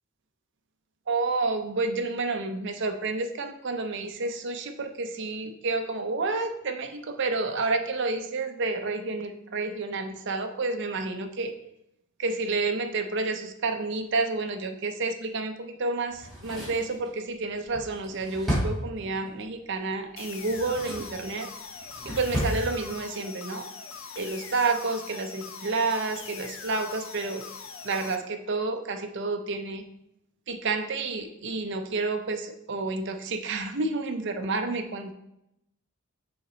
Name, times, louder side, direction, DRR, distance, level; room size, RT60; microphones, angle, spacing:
voice 1, 1.1-11.5 12.2-21.5 22.0-23.7 24.2-27.4 27.8-29.8 30.5-35.1, right 3 dB, 55° right, 6 dB, 0.6 m, -30 dB
Drawer open or close, 16.1-19.4 20.3-21.2 21.6-22.6 22.9-23.0, equal, ahead, 1.7 m, -33 dB
sound 1, 20.2-28.2, left 5 dB, 60° left, 0.5 m, -42 dB
5.7 x 3.9 x 4.2 m, 0.81 s
head